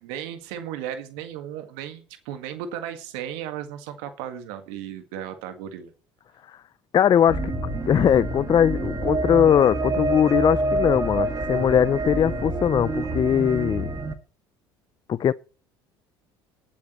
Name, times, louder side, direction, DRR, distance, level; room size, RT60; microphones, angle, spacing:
voice 1, 0.0-5.9, right 10 dB, 75° right, 1.8 m, -35 dB
voice 2, 6.9-7.5 7.8-13.9 15.1-15.3, left 9 dB, 35° left, 0.5 m, -20 dB
sound 1, 7.3-14.1, right 2 dB, 25° right, 2.0 m, -27 dB
20.0 x 8.5 x 3.1 m
hypercardioid pair, 75°, 13 cm